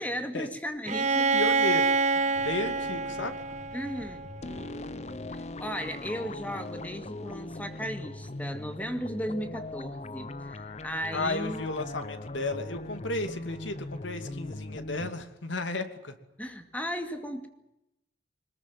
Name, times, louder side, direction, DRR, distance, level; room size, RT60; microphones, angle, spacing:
voice 1, 0.0-1.3 2.3-2.4 3.7-4.2 5.3-11.7 16.4-17.5, equal, 10° left, 6 dB, 2.3 m, -36 dB
Bowed string instrument, 0.9-4.6, right 4 dB, 40° right, 1.3 m, -27 dB
voice 2, 1.3-3.3 11.1-16.1, left 2 dB, 90° left, 8 dB, 2.7 m, -34 dB
sound 1, 2.3-15.1, left 2 dB, 35° left, 0.8 m, -40 dB
21.5 x 20.5 x 9.5 m, 0.90 s
head